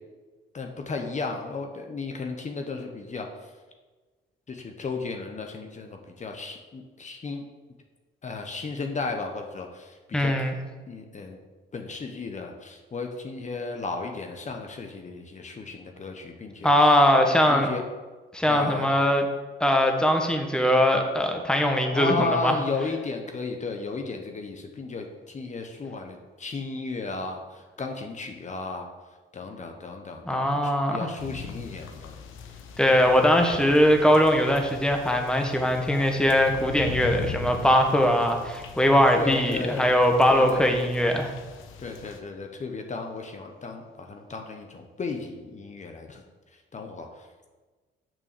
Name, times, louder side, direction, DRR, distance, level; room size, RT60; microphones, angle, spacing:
voice 1, 0.5-3.5 4.5-7.4 8.2-10.3 10.9-11.4 11.7-16.7 17.4-17.8 18.5-18.9 21.9-28.9 29.3-32.1 39.2-40.0 40.3-40.7 41.8-46.2 46.5-47.3, left 4 dB, 35° left, 3 dB, 1.1 m, -34 dB
voice 2, 10.1-10.5 16.6-17.7 18.3-19.3 19.6-22.5 30.3-31.0 32.8-41.3, equal, 5° left, 3 dB, 1.2 m, -21 dB
sound 1, 31.2-42.2, left 6 dB, 85° left, 1.0 m, -40 dB
6.9 x 6.0 x 6.8 m, 1.3 s
cardioid pair, 90°, 20 cm